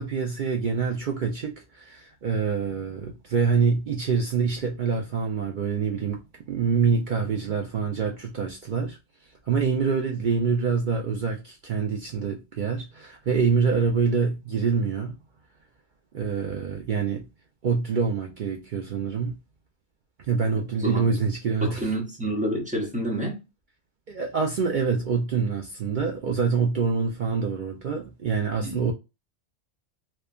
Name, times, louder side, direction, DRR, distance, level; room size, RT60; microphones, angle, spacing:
voice 1, 0.0-6.2 6.5-9.0 9.5-15.1 16.1-17.2 17.6-19.4 20.2-21.8 24.1-28.9, right 5 dB, 60° right, 0.5 m, -26 dB
voice 2, 20.8-21.2 21.6-23.4 28.6-28.9, right 1 dB, 5° right, 0.7 m, -29 dB
3.1 x 2.1 x 2.3 m
omnidirectional pair, 1.3 m